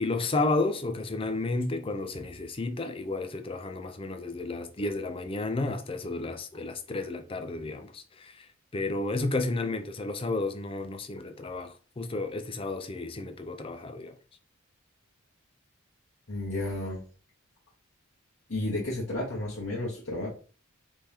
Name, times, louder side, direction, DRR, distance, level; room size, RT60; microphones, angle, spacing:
voice 1, 0.0-8.5 8.7-14.1, left 2 dB, 25° left, 0.5 m, -32 dB
voice 2, 16.3-17.0 18.5-20.3, left 1 dB, 65° left, 1.3 m, -32 dB
4.2 x 3.4 x 3.5 m
head